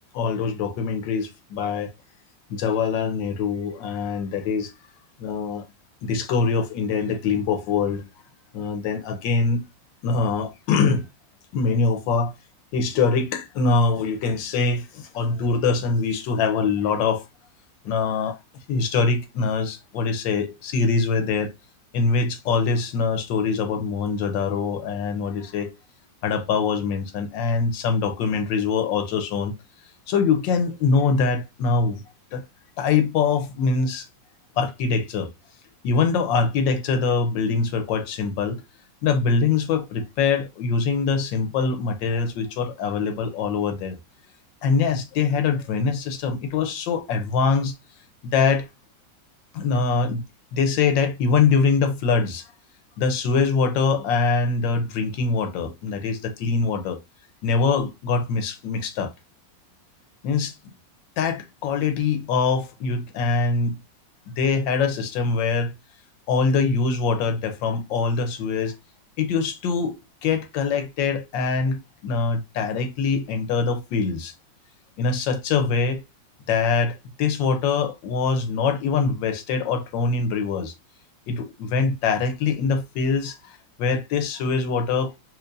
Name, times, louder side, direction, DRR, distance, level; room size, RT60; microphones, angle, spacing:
voice 1, 0.1-1.9 2.5-4.7 5.2-5.7 6.0-8.0 8.5-9.6 10.0-11.1 11.5-12.3 12.7-17.3 17.8-18.4 18.7-21.5 21.9-25.7 26.2-29.5 30.1-32.0 32.3-32.4 32.8-34.1 34.6-35.3 35.8-38.6 39.0-44.0 44.6-47.8 48.2-48.7 49.5-50.2 50.5-52.5 53.0-57.0 57.4-59.1 60.2-60.5 61.2-63.8 64.4-65.7 66.3-68.7 69.2-70.0 70.2-74.3 75.0-76.0 76.5-80.7 81.3-85.2, left 4 dB, 85° left, 1.5 m, -23 dB
4.5 x 2.8 x 2.4 m
omnidirectional pair, 2.0 m